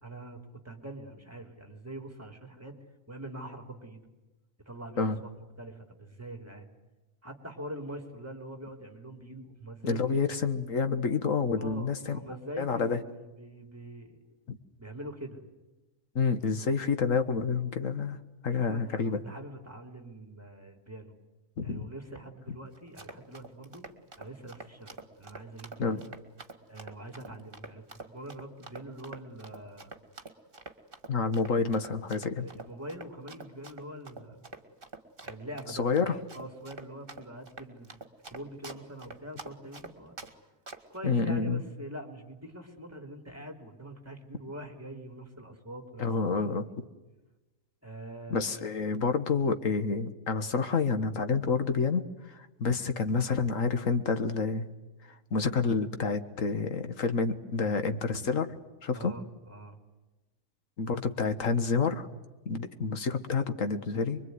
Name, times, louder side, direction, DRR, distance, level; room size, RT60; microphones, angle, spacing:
voice 1, 0.0-2.7 3.1-4.0 4.6-5.1 5.6-6.7 7.2-10.2 11.6-13.0 13.4-14.2 14.8-15.4 18.7-21.2 21.6-23.8 24.2-26.0 26.7-29.9 32.3-34.5 35.2-35.9 36.3-37.9 38.3-40.2 40.9-46.1 46.4-46.6 47.8-48.5 58.9-59.8, right 1 dB, 10° right, 5 dB, 3.3 m, -44 dB
voice 2, 9.8-12.2 12.6-13.0 14.5-14.6 16.2-18.2 18.4-19.2 21.6-21.9 25.8-26.0 31.1-32.5 35.7-36.2 41.0-41.6 46.0-46.6 48.3-54.7 55.3-58.5 58.8-59.1 60.8-62.1 62.5-64.2, left 4 dB, 60° left, 9 dB, 1.9 m, -28 dB
Run, 22.8-40.3 40.7-41.0, right 3 dB, 35° right, 2.1 m, -46 dB
25.0 x 23.5 x 9.6 m, 1.1 s
omnidirectional pair, 1.6 m